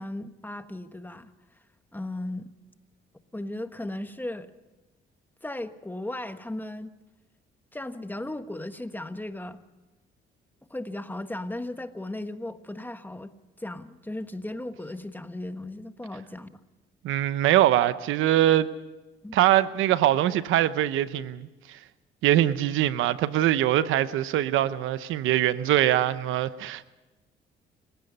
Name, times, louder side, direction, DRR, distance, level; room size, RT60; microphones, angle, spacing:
voice 1, 0.0-1.3 1.9-2.5 3.3-4.5 5.4-6.9 7.7-9.6 10.7-13.3 13.6-16.6 19.2-19.4, left 1 dB, 10° left, 1.3 m, -36 dB
voice 2, 17.0-18.7 19.3-21.8 22.2-26.8, right 13 dB, 90° right, 0.9 m, -23 dB
29.5 x 16.5 x 5.5 m
cardioid pair, 90°, 20 cm